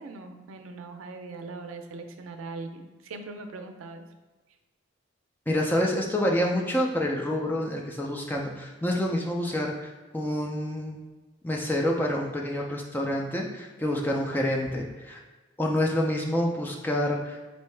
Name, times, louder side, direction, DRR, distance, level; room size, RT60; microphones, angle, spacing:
voice 1, 0.0-4.0, right 3 dB, 90° right, 6 dB, 0.4 m, -40 dB
voice 2, 5.5-11.0 11.4-15.2 15.6-17.4, left 1 dB, 10° left, -1 dB, 0.4 m, -27 dB
4.4 x 2.7 x 3.2 m, 1.3 s
head